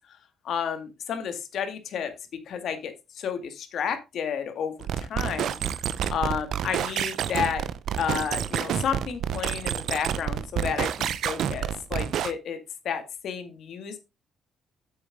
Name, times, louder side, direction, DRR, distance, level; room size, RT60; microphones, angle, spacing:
voice 1, 0.4-2.1 2.5-5.8 6.1-7.6 8.0-12.6 12.8-14.0, left 7 dB, 70° left, 8 dB, 2.0 m, -31 dB
sound 1, 4.8-12.3, right 9 dB, 75° right, 0.8 m, -29 dB
8.7 x 7.6 x 3.7 m, 0.25 s
cardioid pair, 90°, 0 cm